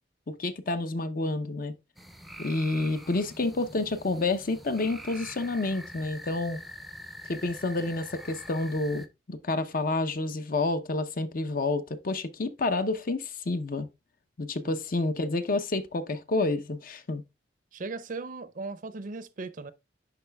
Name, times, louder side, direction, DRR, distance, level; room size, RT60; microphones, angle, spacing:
voice 1, 0.3-1.7 2.4-6.6 7.3-13.9 14.4-17.2, left 2 dB, 50° left, 0.6 m, -29 dB
sound 1, 2.0-9.1, equal, ahead, 0.5 m, -44 dB
voice 2, 17.7-19.7, right 3 dB, 45° right, 0.5 m, -37 dB
10.5 x 3.9 x 2.2 m
head